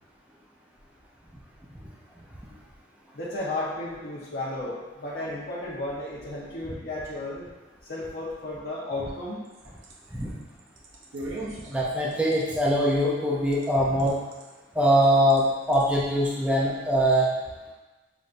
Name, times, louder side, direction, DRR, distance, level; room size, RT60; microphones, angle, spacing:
voice 1, 3.1-7.5 7.9-9.4, left 2 dB, 55° left, -9 dB, 0.9 m, -33 dB
sound 1, 9.3-13.7 14.0-14.5 15.0-15.4 15.7-15.8, right 1 dB, 80° right, 0.7 m, -40 dB
voice 2, 11.7-14.2 14.7-17.3, equal, 5° right, -6 dB, 0.6 m, -22 dB
7.0 x 2.6 x 2.6 m, 1.2 s
head